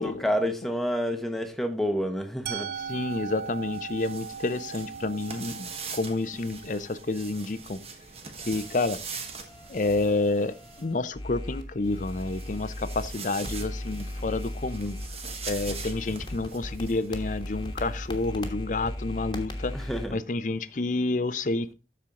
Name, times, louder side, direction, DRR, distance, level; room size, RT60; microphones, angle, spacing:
voice 1, 0.0-2.7 19.7-20.2, equal, ahead, 0.9 m, -29 dB
Musical instrument, 2.5-8.4, right 7 dB, 60° right, 0.6 m, -40 dB
sound 1, 2.7-10.8 11.8-18.3, right 5 dB, 35° right, 1.2 m, -43 dB
voice 2, 2.9-7.8 8.5-9.0 9.7-15.0 15.5-19.8 20.1-21.7, left 2 dB, 45° left, 0.6 m, -29 dB
sound 2, 8.4-13.1 13.4-20.1, left 1 dB, 25° left, 1.3 m, -37 dB
13.0 x 4.4 x 3.7 m
head